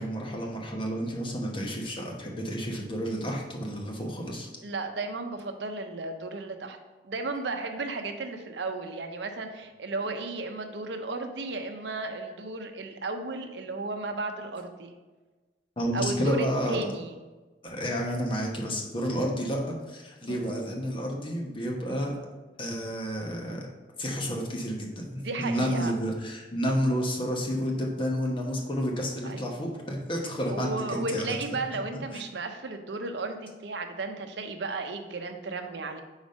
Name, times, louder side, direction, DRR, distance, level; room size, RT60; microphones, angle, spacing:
voice 1, 0.0-4.5 8.8-8.9 11.3-11.4 12.1-12.3 15.8-16.8 17.6-22.1 22.6-23.7 24.0-31.3 32.1-32.2, equal, 30° left, 0 dB, 0.9 m, -30 dB
voice 2, 4.6-6.8 7.0-15.0 15.9-17.2 20.3-20.4 25.2-26.0 29.2-29.4 30.2-36.0, right 3 dB, 75° right, 6 dB, 0.6 m, -34 dB
5.1 x 4.0 x 5.2 m, 1.2 s
head